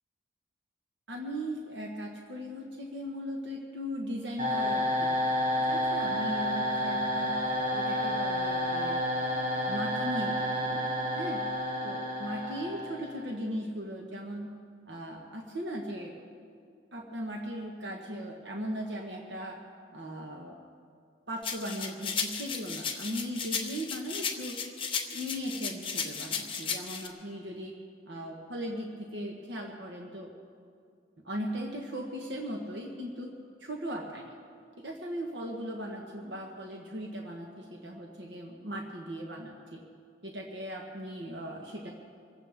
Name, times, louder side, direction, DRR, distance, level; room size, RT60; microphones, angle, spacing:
voice 1, 1.1-5.3 5.7-7.4 7.7-9.0 9.7-10.9 11.1-11.4 11.8-14.5 14.9-16.1 16.9-19.6 19.9-20.6 21.3-24.6 25.1-27.7 28.1-30.3 31.2-33.3 33.6-34.2 34.8-39.8 40.2-41.9, equal, 55° right, 0 dB, 1.3 m, -38 dB
sound 1, 4.4-13.3, equal, 40° right, 4.5 m, -30 dB
sound 2, 21.4-27.1, left 6 dB, 25° left, 1.0 m, -35 dB
25.5 x 15.5 x 3.6 m, 2.3 s
head